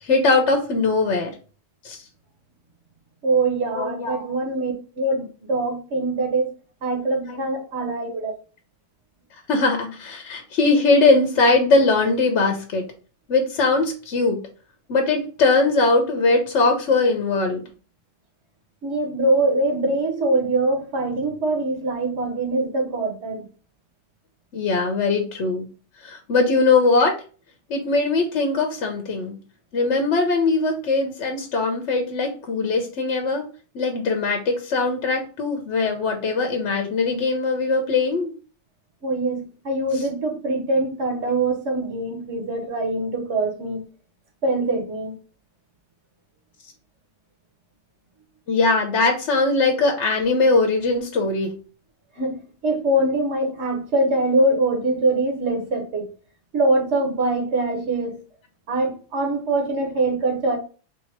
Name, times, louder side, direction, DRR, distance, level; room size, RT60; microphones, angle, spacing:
voice 1, 0.0-1.3 1.8-2.0 3.7-4.2 7.3-7.4 9.5-12.8 13.3-14.4 14.9-17.6 24.5-25.7 26.0-27.1 27.7-29.4 29.7-33.5 33.7-38.3 39.9-40.0 48.5-51.5, left 3 dB, 70° left, 1.0 m, -20 dB
voice 2, 3.2-6.5 6.8-8.3 18.8-23.4 39.0-43.9 44.4-45.2 52.2-52.3 52.6-56.1 56.5-58.2 58.7-60.6, right 2 dB, 65° right, 1.4 m, -23 dB
3.4 x 2.8 x 4.4 m
omnidirectional pair, 1.3 m